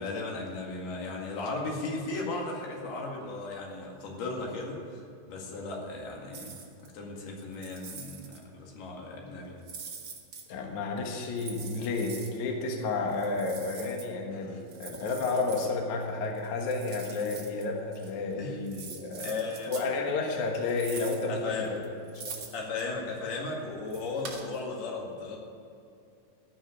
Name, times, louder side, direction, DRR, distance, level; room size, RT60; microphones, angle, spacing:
voice 1, 0.0-6.6 6.9-9.6 18.4-18.6 19.2-19.7 21.3-21.8 22.5-25.4, left 3 dB, 80° left, -1 dB, 4.0 m, -36 dB
sound 1, 6.3-6.9 7.4-8.4 9.6-10.4 11.2-12.4 13.1-14.1 14.7-15.7 16.4-17.7 17.9-18.1 18.7-19.9 20.6-21.3 21.6-22.8 23.9-24.6, right 5 dB, 50° right, 1.7 m, -44 dB
voice 2, 10.5-19.4 19.7-21.8 22.2-22.4, left 3 dB, 60° left, 1 dB, 2.6 m, -31 dB
16.0 x 6.4 x 9.9 m, 2.5 s
omnidirectional pair, 4.4 m